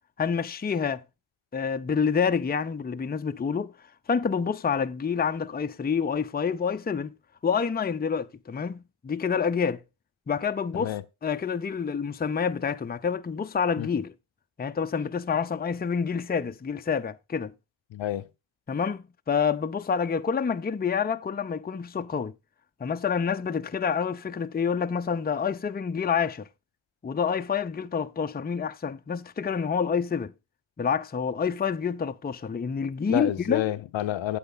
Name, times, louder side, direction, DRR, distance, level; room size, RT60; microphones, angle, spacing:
voice 1, 0.2-1.0 1.5-3.7 4.1-7.1 7.4-9.8 10.3-11.0 11.2-14.1 14.6-17.5 18.7-22.3 22.8-26.5 27.0-30.3 30.8-33.7, left 6 dB, 20° left, 0.6 m, -28 dB
voice 2, 17.9-18.3 33.1-34.4, left 13 dB, 70° left, 0.7 m, -29 dB
8.2 x 8.0 x 3.9 m
supercardioid pair, 50°, 48 cm